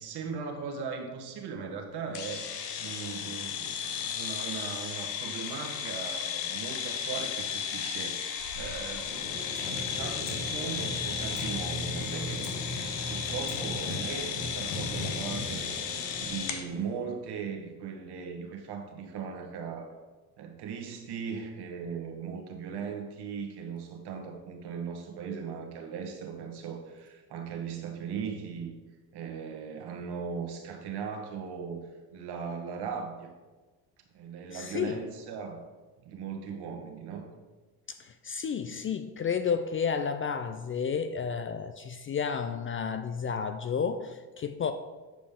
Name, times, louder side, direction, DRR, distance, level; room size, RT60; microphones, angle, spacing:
voice 1, 0.0-2.4 2.8-12.5 13.1-19.9 20.4-28.7 29.1-33.3 34.1-35.6 36.0-37.3, right 6 dB, 60° right, 3 dB, 1.4 m, -38 dB
sound 1, 2.1-16.6, left 8 dB, 75° left, 1.0 m, -35 dB
sound 2, 8.8-17.1, left 1 dB, 60° left, 2.0 m, -38 dB
voice 2, 34.5-35.0 37.9-44.7, left 6 dB, 30° left, 9 dB, 0.4 m, -31 dB
9.0 x 5.0 x 3.6 m, 1.3 s
supercardioid pair, 75°, 44 cm